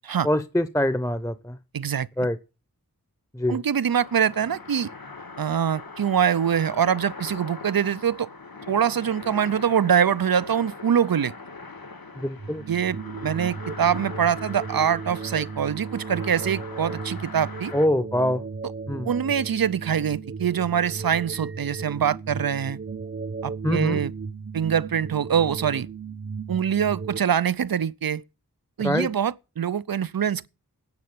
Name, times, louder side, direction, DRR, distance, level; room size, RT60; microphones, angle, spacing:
voice 1, 0.2-1.6 2.2-2.4 3.3-3.6 12.2-12.6 17.7-18.4 18.9-19.1 23.6-24.0 28.8-29.1, left 1 dB, 10° left, 0.7 m, -24 dB
voice 2, 1.7-2.1 3.5-4.9 5.4-8.3 8.7-11.3 12.7-17.7 19.0-22.8 23.4-24.1 24.5-25.9 26.5-28.2 28.8-30.5, right 8 dB, 75° right, 0.5 m, -24 dB
sound 1, 3.9-17.9, left 3 dB, 75° left, 1.7 m, -41 dB
sound 2, 12.4-27.2, right 5 dB, 30° right, 0.8 m, -35 dB
9.7 x 7.8 x 8.9 m
wide cardioid pair, 45°, 35 cm